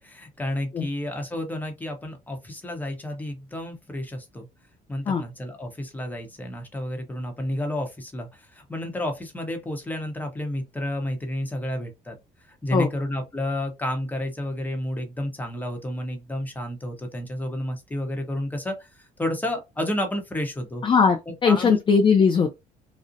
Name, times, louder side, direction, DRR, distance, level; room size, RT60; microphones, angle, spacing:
voice 1, 0.0-4.5 4.9-12.2 12.5-20.8 21.3-21.8, left 1 dB, 10° left, 0.8 m, -31 dB
voice 2, 20.8-22.6, left 5 dB, 30° left, 0.4 m, -19 dB
2.5 x 2.0 x 2.6 m
cardioid pair, 110°, 17 cm